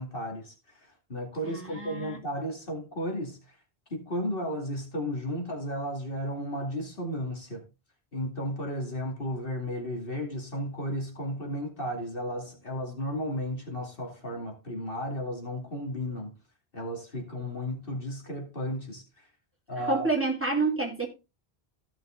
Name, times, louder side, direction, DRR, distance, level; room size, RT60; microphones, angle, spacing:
voice 1, 0.0-3.6 3.9-7.7 8.1-16.3 16.7-19.3 19.7-20.1, equal, 60° left, 2.7 m, -34 dB
voice 2, 1.4-2.2 19.8-21.1, right 3 dB, 10° right, 2.9 m, -28 dB
15.5 x 6.0 x 3.8 m
omnidirectional pair, 1.1 m